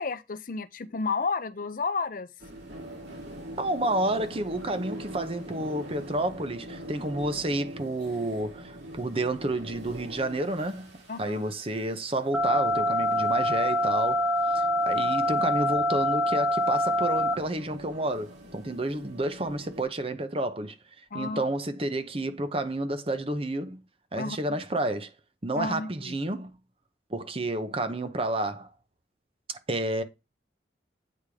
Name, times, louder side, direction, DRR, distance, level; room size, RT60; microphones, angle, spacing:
voice 1, 0.0-2.3 11.1-11.4 21.1-21.5 24.2-24.4 25.6-26.1, left 4 dB, 50° left, 0.6 m, -31 dB
sound 1, 2.4-19.8, equal, 75° right, 3.0 m, -44 dB
voice 2, 3.6-10.9 11.2-23.8 24.1-25.1 25.4-26.5 27.1-28.7 29.5-30.0, right 1 dB, 30° right, 0.8 m, -30 dB
sound 2, 12.3-17.3, left 1 dB, ahead, 0.7 m, -25 dB
8.6 x 3.6 x 4.9 m
head